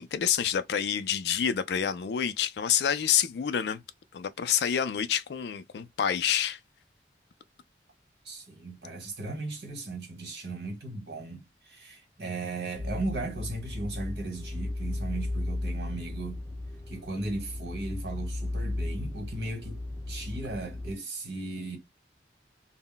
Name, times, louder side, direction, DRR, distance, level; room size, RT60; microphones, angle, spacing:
voice 1, 0.0-3.8 4.1-6.6, left 8 dB, 70° left, 0.4 m, -28 dB
voice 2, 8.2-16.4 16.9-19.8 20.1-21.8, right 2 dB, 70° right, 1.2 m, -36 dB
sound 1, 12.7-20.9, left 2 dB, 15° left, 0.5 m, -35 dB
2.2 x 2.0 x 3.7 m
head